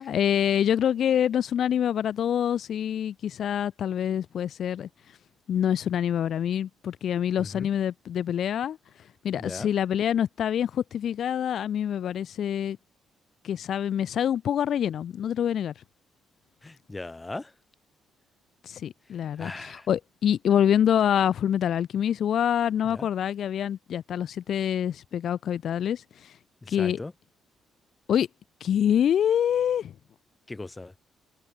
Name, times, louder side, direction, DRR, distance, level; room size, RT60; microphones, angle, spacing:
voice 1, 0.0-4.9 5.5-8.8 9.2-12.8 13.4-15.7 18.6-26.3 26.7-27.0 28.1-28.3 28.6-29.9, left 9 dB, 65° left, 6.1 m, -26 dB
voice 2, 7.4-7.7 9.4-9.7 16.6-17.5 19.4-19.9 22.9-23.1 26.6-27.1 30.5-30.9, left 2 dB, 20° left, 7.4 m, -38 dB
cardioid pair, 90°, 0 cm